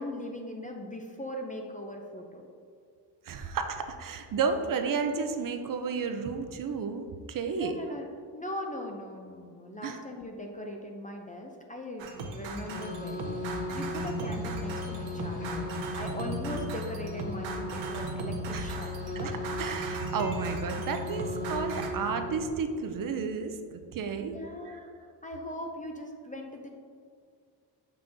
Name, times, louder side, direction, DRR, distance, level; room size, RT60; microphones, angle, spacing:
voice 1, 0.0-2.5 7.5-13.5 13.7-15.7 16.0-19.4 24.2-24.9 25.2-26.7, left 1 dB, 20° left, 2 dB, 0.4 m, -39 dB
voice 2, 3.2-7.7 9.8-10.0 18.5-18.9 19.2-24.4 24.7-24.8, right 5 dB, 50° right, 7 dB, 0.5 m, -32 dB
sound 1, 12.0-21.9, right 2 dB, 90° right, 0.9 m, -37 dB
sound 2, 12.5-22.5, left 1 dB, 40° left, 1.1 m, -38 dB
7.2 x 5.6 x 2.6 m, 2.2 s
cardioid pair, 145°, 45 cm